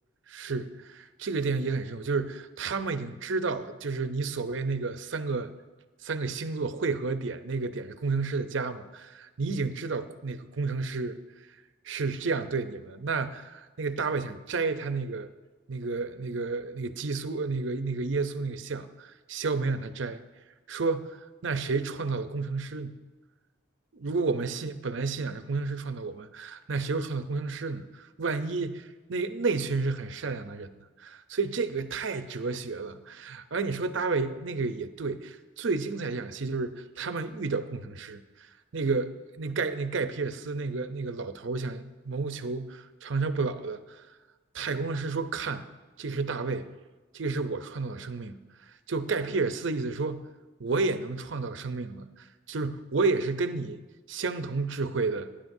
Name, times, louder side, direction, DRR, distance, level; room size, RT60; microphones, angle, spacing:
voice 1, 0.3-5.5 6.0-11.2 11.8-15.3 15.7-20.2 20.7-21.1 21.4-23.0 23.9-30.7 31.0-38.2 38.7-39.1 39.4-43.8 44.5-45.6 46.0-46.7 47.1-48.4 48.9-50.3 50.6-53.8 54.1-55.3, right 4 dB, 70° right, 10 dB, 0.6 m, -31 dB
18.5 x 10.0 x 2.7 m, 1.3 s
head